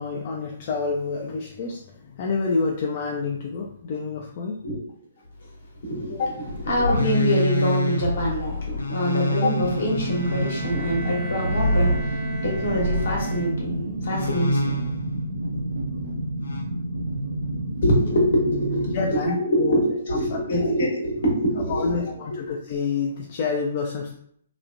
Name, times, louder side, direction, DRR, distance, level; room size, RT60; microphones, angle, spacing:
voice 1, 0.0-4.6 18.9-19.8 20.3-20.6 21.7-24.2, left 4 dB, 45° left, 0 dB, 0.3 m, -28 dB
voice 2, 5.8-14.8 17.8-22.4, equal, 65° left, -2 dB, 1.1 m, -25 dB
sound 1, 6.5-13.3 14.1-15.1 16.4-16.6, left 1 dB, 90° left, 0.6 m, -26 dB
sound 2, 9.6-19.1, right 1 dB, 80° right, 0.5 m, -29 dB
Bowed string instrument, 10.0-14.0, right 4 dB, 25° right, 0.4 m, -38 dB
3.0 x 2.1 x 2.5 m, 0.66 s
figure-of-eight pair, 130°, 0 cm